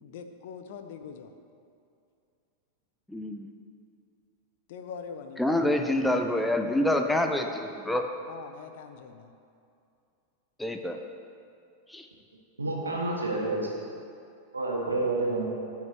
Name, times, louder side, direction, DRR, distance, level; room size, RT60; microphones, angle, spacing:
voice 1, 0.0-1.3 4.7-6.3 8.3-9.3, left 6 dB, 50° left, 7 dB, 0.6 m, -43 dB
voice 2, 3.1-3.5 5.4-8.1 10.6-11.0 11.9-12.1, left 1 dB, 5° left, 4 dB, 0.6 m, -27 dB
voice 3, 12.6-13.7 14.5-15.4, right 2 dB, 80° right, -2 dB, 1.6 m, -29 dB
14.5 x 5.8 x 3.0 m, 2.5 s
figure-of-eight pair, 90°, 0 cm